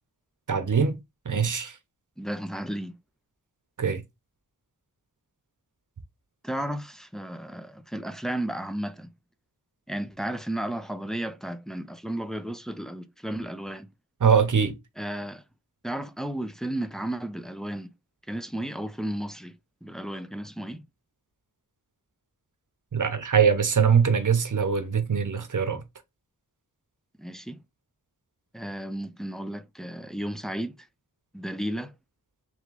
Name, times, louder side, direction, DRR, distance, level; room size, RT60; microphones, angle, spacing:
voice 1, 0.5-1.0 1.3-1.8 3.8-4.0 14.2-14.7 22.9-25.8, right 6 dB, 55° right, 0.8 m, -22 dB
voice 2, 2.2-2.9 6.4-9.1 9.9-13.9 15.0-15.4 15.8-17.9 18.3-19.5 19.8-20.8 27.2-27.6 28.5-30.9 31.3-31.9, right 1 dB, ahead, 0.5 m, -33 dB
3.6 x 3.1 x 3.3 m
wide cardioid pair, 65°, 36 cm